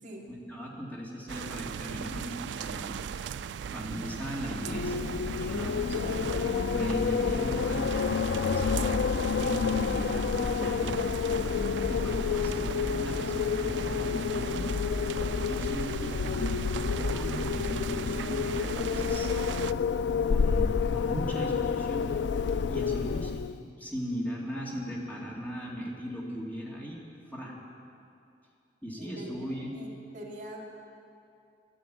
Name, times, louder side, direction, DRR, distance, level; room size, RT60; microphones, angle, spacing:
voice 1, 0.3-3.0 3.7-6.3 6.7-9.0 9.4-11.2 11.9-14.7 15.4-19.8 20.2-22.1 22.7-23.5 23.8-27.0 27.3-27.6 28.8-29.7, equal, 10° left, -4 dB, 2.3 m, -38 dB
sound 1, 1.3-19.7, right 7 dB, 80° right, 0.3 m, -38 dB
Wind, 4.6-23.6, left 6 dB, 75° left, 0.4 m, -29 dB
voice 2, 29.0-29.5 29.7-30.6, right 1 dB, 45° right, -4 dB, 2.8 m, -44 dB
12.5 x 10.0 x 9.1 m, 2.6 s
head